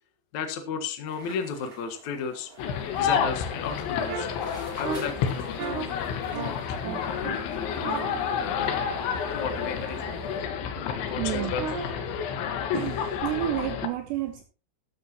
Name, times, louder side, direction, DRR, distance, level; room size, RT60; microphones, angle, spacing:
voice 1, 0.3-2.5 3.0-4.3 4.8-7.8 8.4-9.0 9.3-10.0 10.8-11.7, left 6 dB, 60° left, 5 dB, 2.0 m, -34 dB
sound 1, 1.1-10.4, right 2 dB, 15° right, 2.1 m, -49 dB
sound 2, 2.6-13.9, left 7 dB, 80° left, 3.9 m, -30 dB
sound 3, 4.1-4.2 4.8-5.0 5.6-5.8 6.3-6.5 6.8-7.3 7.8-10.1 11.3-11.8, right 6 dB, 50° right, 3.1 m, -36 dB
voice 2, 8.8-9.3 9.8-10.4 10.8-10.9 11.1-11.6 12.1-12.2 12.7-14.4, right 13 dB, 75° right, 5 dB, 3.2 m, -32 dB
14.0 x 12.0 x 3.0 m, 0.33 s
omnidirectional pair, 5.3 m